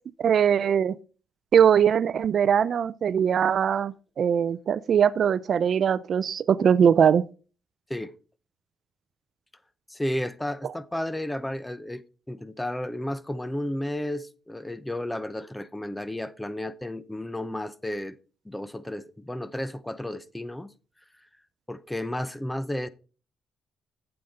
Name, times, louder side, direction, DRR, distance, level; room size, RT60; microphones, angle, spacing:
voice 1, 0.2-1.0 1.5-7.2, right 8 dB, 55° right, 0.4 m, -21 dB
voice 2, 9.9-18.2 18.5-20.7 21.7-22.9, left 1 dB, 10° left, 0.6 m, -32 dB
8.6 x 7.9 x 4.0 m
cardioid pair, 90°, 0 cm